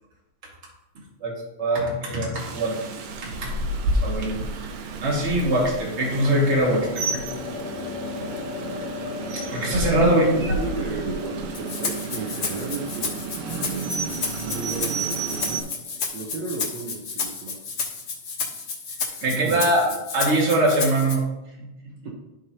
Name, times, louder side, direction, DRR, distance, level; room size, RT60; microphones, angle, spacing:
voice 1, 1.6-2.7 3.2-3.5 4.0-4.4 5.0-7.2 9.3-10.5 19.2-21.2 21.6-21.7, right 1 dB, 25° right, -3 dB, 1.7 m, -22 dB
sound 1, 2.3-2.9 5.4-16.8, left 6 dB, 75° left, 1.7 m, -38 dB
Rain, 2.4-15.6, right 3 dB, 85° right, 2.4 m, -31 dB
voice 2, 10.0-13.4 14.4-15.6 16.1-17.9 19.4-19.6 22.0-22.1, right 3 dB, 65° right, -1 dB, 2.0 m, -33 dB
Rattle (instrument), 11.5-21.1, left 4 dB, 60° left, 1.0 m, -31 dB
12.0 x 5.4 x 2.9 m, 0.98 s
omnidirectional pair, 3.6 m